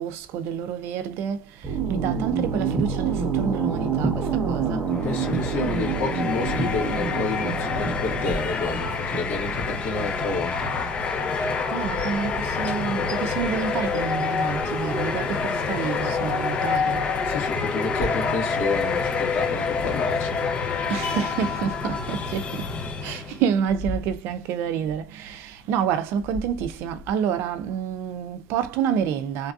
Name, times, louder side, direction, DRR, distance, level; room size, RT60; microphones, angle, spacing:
voice 1, 0.0-4.9 11.7-17.1 20.9-29.5, right 8 dB, 70° right, 0.5 m, -28 dB
sound 1, 1.6-13.1, right 5 dB, 35° right, 0.9 m, -28 dB
sound 2, 4.9-23.4, left 5 dB, 30° left, 0.8 m, -27 dB
voice 2, 5.0-10.7 17.2-20.4, left 3 dB, 70° left, 1.6 m, -30 dB
3.3 x 2.6 x 2.3 m
cardioid pair, 145°, 4 cm